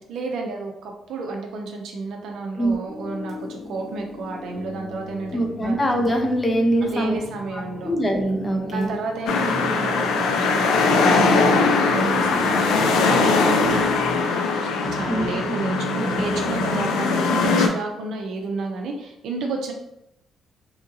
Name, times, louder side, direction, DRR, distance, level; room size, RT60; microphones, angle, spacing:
voice 1, 0.1-5.8 6.8-7.9 8.4-19.7, right 3 dB, 75° right, 2 dB, 0.4 m, -31 dB
sound 1, 2.9-13.5, left 2 dB, 55° left, 1.4 m, -39 dB
voice 2, 5.3-7.2 7.5-8.9 15.1-15.4, right 1 dB, 20° left, 2 dB, 0.5 m, -23 dB
sound 2, 9.3-17.7, left 3 dB, 90° left, 0.4 m, -20 dB
sound 3, 12.0-12.2 12.7-12.9 13.6-14.2 14.8-15.5 16.1-16.8 17.3-17.5, right 1 dB, 25° right, 0.8 m, -38 dB
2.8 x 2.6 x 2.7 m, 0.84 s
cardioid pair, 90°, 0 cm